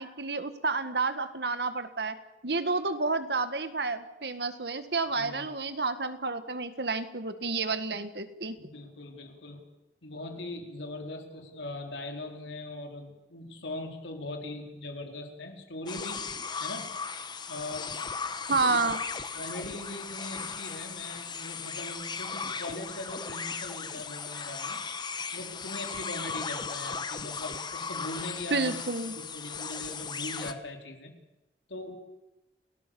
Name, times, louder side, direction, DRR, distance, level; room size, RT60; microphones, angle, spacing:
voice 1, 0.0-2.2 2.4-8.6 18.5-19.0 28.5-29.1, right 3 dB, 65° right, 10 dB, 1.8 m, -30 dB
voice 2, 5.2-5.5 8.6-9.6 10.0-16.3 16.6-17.0 17.5-17.9 18.7-18.8 19.3-24.8 25.3-31.1 31.7-32.0, left 2 dB, 80° left, 3 dB, 4.0 m, -40 dB
sound 1, 15.9-30.5, left 5 dB, 25° left, 1.1 m, -37 dB
29.5 x 18.5 x 7.1 m, 1.0 s
head